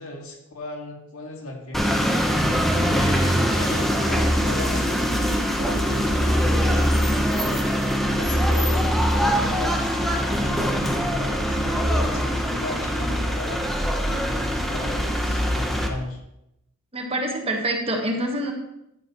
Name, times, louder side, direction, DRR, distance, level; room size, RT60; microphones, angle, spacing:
voice 1, 0.0-2.1 2.9-7.3 8.0-16.2, left 1 dB, 75° left, 0 dB, 2.1 m, -36 dB
sound 1, 1.7-15.9, equal, ahead, 1.0 m, -22 dB
voice 2, 16.9-18.5, right 1 dB, 25° right, 2 dB, 1.4 m, -26 dB
11.0 x 9.2 x 3.1 m, 0.83 s
head